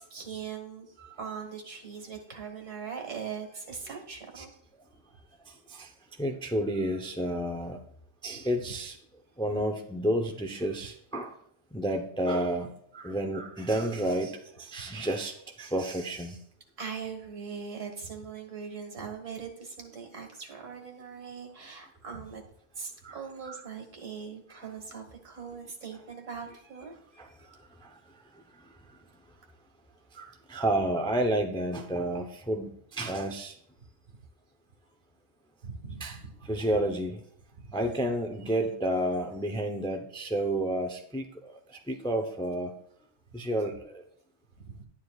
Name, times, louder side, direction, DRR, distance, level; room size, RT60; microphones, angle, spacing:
voice 1, 0.0-0.9 1.2-4.5 14.8-15.1 16.8-22.4 22.8-27.0 27.4-27.5 35.6-36.2 37.5-37.6 44.6-44.8, right 6 dB, 80° right, 3 dB, 1.9 m, -41 dB
voice 2, 5.4-5.9 6.2-7.8 8.2-9.0 9.4-11.3 11.7-16.4 23.0-23.2 23.4-23.6 24.5-24.6 27.2-28.0 28.6-28.8 30.1-33.5 36.0-36.2 36.4-37.2 37.7-42.7 43.3-44.0, right 1 dB, 5° left, 3 dB, 0.5 m, -31 dB
11.0 x 9.8 x 2.4 m, 0.66 s
omnidirectional pair, 1.3 m